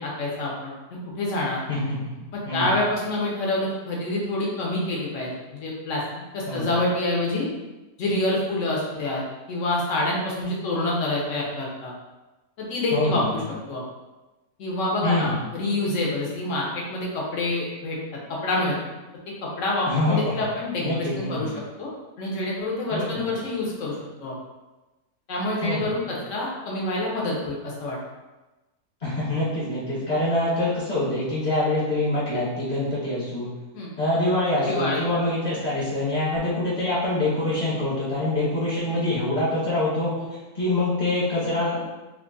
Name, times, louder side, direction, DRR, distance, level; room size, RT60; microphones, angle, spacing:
voice 1, 0.0-1.6 2.3-6.0 6.3-7.5 8.0-9.2 9.5-11.9 12.6-13.4 13.7-13.8 14.6-18.0 18.3-18.7 19.4-21.5 21.8-21.9 22.2-24.3 25.3-28.0 33.7-33.9 34.7-35.0 40.2-40.3, left 2 dB, 60° left, -3 dB, 1.1 m, -27 dB
voice 2, 1.7-2.1 2.5-2.8 6.5-6.7 12.9-13.2 15.0-15.4 19.8-20.3 20.8-21.6 22.9-23.3 25.6-25.9 29.0-33.5 34.0-40.1 40.5-41.9, left 2 dB, 40° left, -10 dB, 1.4 m, -25 dB
2.9 x 2.4 x 3.8 m, 1.1 s
omnidirectional pair, 1.5 m